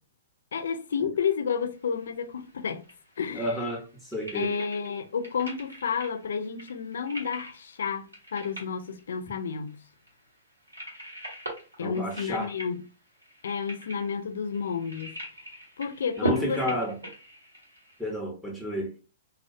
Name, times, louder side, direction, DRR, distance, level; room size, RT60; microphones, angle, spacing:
voice 1, 0.5-2.8 3.2-3.5 4.3-9.8 11.8-12.8 13.4-15.2 15.8-16.6, left 6 dB, 65° left, 0.4 m, -31 dB
sound 1, 1.5-18.1, right 2 dB, 90° right, 1.1 m, -40 dB
voice 2, 3.3-4.5 11.8-12.5 16.2-17.0 18.0-18.9, equal, ahead, 0.7 m, -31 dB
2.3 x 2.2 x 2.6 m
figure-of-eight pair, 115°, 0 cm